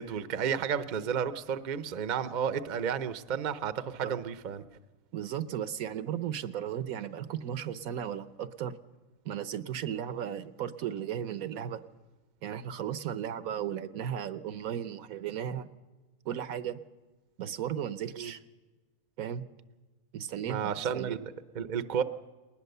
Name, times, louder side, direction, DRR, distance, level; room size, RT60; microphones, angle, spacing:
voice 1, 0.0-4.6 18.2-18.3 20.5-22.0, right 7 dB, 40° right, 11 dB, 0.7 m, -32 dB
voice 2, 5.1-8.8 9.2-11.8 12.4-15.7 16.2-16.8 17.4-18.4 19.2-19.4 20.1-21.2, right 9 dB, 75° right, 12 dB, 1.3 m, -35 dB
20.5 x 19.5 x 6.8 m, 1.3 s
omnidirectional pair, 1.5 m